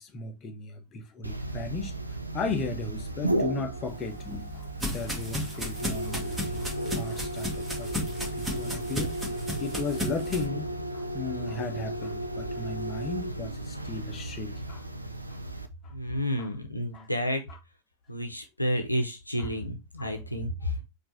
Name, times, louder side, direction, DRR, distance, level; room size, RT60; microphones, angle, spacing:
voice 1, 0.0-2.0 2.3-4.2 4.5-14.8 15.3-15.4 15.8-15.9 16.4-16.5 16.9-17.1 17.5-17.6 19.4-19.5 20.0-20.1, left 3 dB, 25° left, 1.0 m, -36 dB
sound 1, 1.2-15.7, right 1 dB, 85° right, 0.5 m, -34 dB
sound 2, 3.9-10.5, left 1 dB, 5° right, 1.6 m, -35 dB
voice 2, 15.9-17.4 18.1-20.9, equal, 85° left, 0.8 m, -30 dB
4.5 x 2.7 x 4.1 m
figure-of-eight pair, 90°, 0 cm